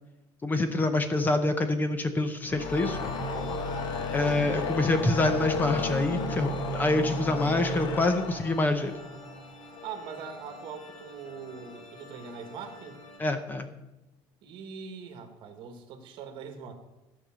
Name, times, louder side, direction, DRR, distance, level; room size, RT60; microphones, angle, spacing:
voice 1, 0.4-3.0 4.1-8.9 13.2-13.7, left 2 dB, 15° left, 9 dB, 0.7 m, -26 dB
sound 1, 2.4-9.8, left 2 dB, 45° left, 1.2 m, -33 dB
sound 2, 2.6-13.2, left 2 dB, 75° left, 3.1 m, -47 dB
voice 2, 3.5-3.9 9.8-13.0 14.4-16.7, right 6 dB, 50° right, 6 dB, 1.8 m, -42 dB
14.0 x 5.4 x 7.5 m, 0.97 s
cardioid pair, 170°, 10 cm